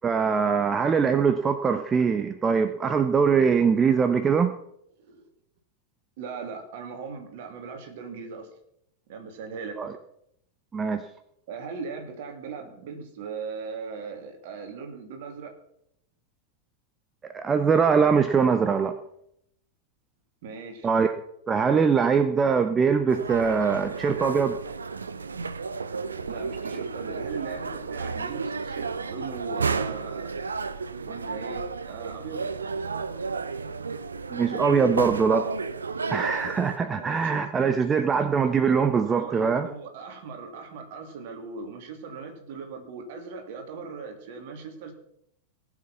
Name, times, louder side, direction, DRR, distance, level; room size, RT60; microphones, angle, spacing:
voice 1, 0.0-4.5 9.8-9.9 10.7-11.0 17.3-18.9 20.8-21.1 21.5-24.6 34.3-35.5 36.1-39.7, right 6 dB, 20° right, 10 dB, 0.8 m, -22 dB
voice 2, 6.2-8.5 9.1-9.9 11.5-15.5 20.4-20.9 26.3-30.3 31.0-32.5 36.8-37.9 39.1-44.9, right 5 dB, 50° right, 4 dB, 2.8 m, -39 dB
sound 1, 23.1-36.8, right 4 dB, 75° right, 0.7 m, -32 dB
18.5 x 7.3 x 5.9 m, 0.74 s
figure-of-eight pair, 90°, 0 cm